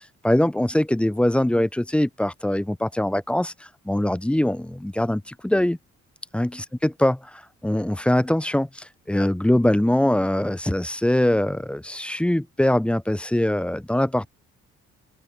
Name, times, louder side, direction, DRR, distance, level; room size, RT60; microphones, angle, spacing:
voice 1, 0.2-3.5 3.9-5.8 6.3-7.1 7.6-14.3, left 1 dB, 5° left, 0.6 m, -22 dB
cardioid pair, 90°, 30 cm